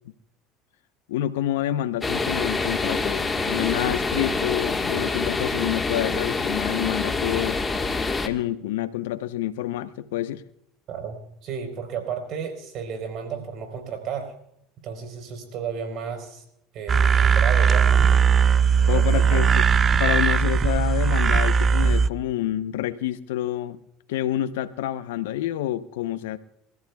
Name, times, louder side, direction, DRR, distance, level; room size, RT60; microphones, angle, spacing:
voice 1, 1.1-7.6 8.2-10.4 18.9-19.7 20.0-23.8 24.1-26.4, left 12 dB, 85° left, 13 dB, 0.7 m, -28 dB
sound 1, 2.0-8.3, left 3 dB, 20° left, 1.5 m, -26 dB
voice 2, 11.4-14.3 14.8-16.4 16.7-18.2 18.9-19.5, right 6 dB, 60° right, 6 dB, 4.1 m, -33 dB
sound 2, 16.9-22.1, right 6 dB, 35° right, 0.6 m, -19 dB
28.5 x 14.5 x 2.3 m, 0.76 s
hypercardioid pair, 85°, 0 cm